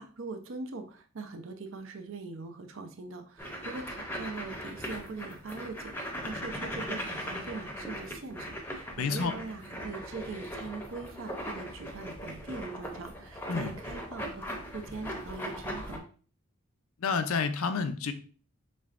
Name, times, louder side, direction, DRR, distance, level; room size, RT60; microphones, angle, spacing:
voice 1, 0.0-16.1, right 3 dB, 70° right, 6 dB, 0.6 m, -42 dB
sound 1, 3.4-16.0, equal, 10° left, 0.6 m, -39 dB
voice 2, 9.0-9.3 13.5-13.8 17.0-18.1, left 5 dB, 80° left, 9 dB, 0.5 m, -29 dB
5.3 x 3.2 x 2.4 m, 0.40 s
head